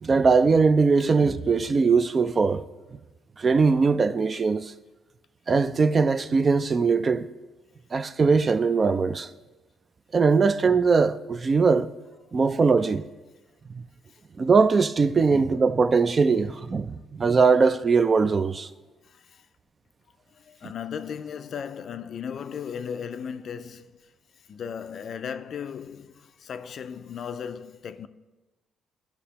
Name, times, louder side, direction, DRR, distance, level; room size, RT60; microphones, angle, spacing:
voice 1, 0.0-2.6 3.4-4.7 5.5-7.3 7.9-9.3 10.1-11.9 12.3-13.1 13.7-13.8 14.4-18.7, right 4 dB, 35° right, 0.3 m, -21 dB
voice 2, 19.1-19.4 20.4-24.0 24.5-28.1, left 7 dB, 60° left, 0.3 m, -36 dB
13.5 x 5.7 x 2.9 m
cardioid pair, 90°, 0 cm